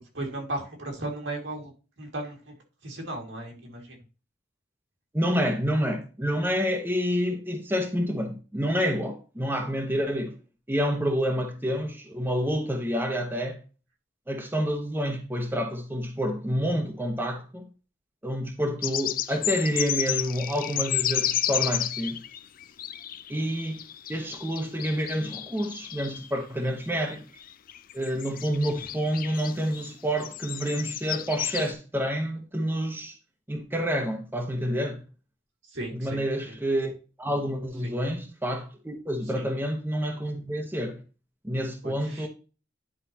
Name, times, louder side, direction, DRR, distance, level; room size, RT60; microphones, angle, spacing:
voice 1, 0.1-1.7 2.0-2.5 2.8-4.0 35.7-36.2 37.8-37.9 39.3-39.4 41.8-42.3, right 1 dB, 75° right, 2.2 m, -35 dB
voice 2, 5.1-10.4 10.7-13.6 14.3-17.7 18.2-22.2 23.3-27.2 27.9-33.2 33.5-35.0 35.9-36.9 37.2-41.0 41.4-42.3, equal, 10° right, 0.9 m, -28 dB
sound 1, 18.8-26.3 26.8-27.1 27.4-29.9 30.2-31.7, left 12 dB, 50° left, 0.4 m, -32 dB
10.0 x 4.8 x 2.9 m
head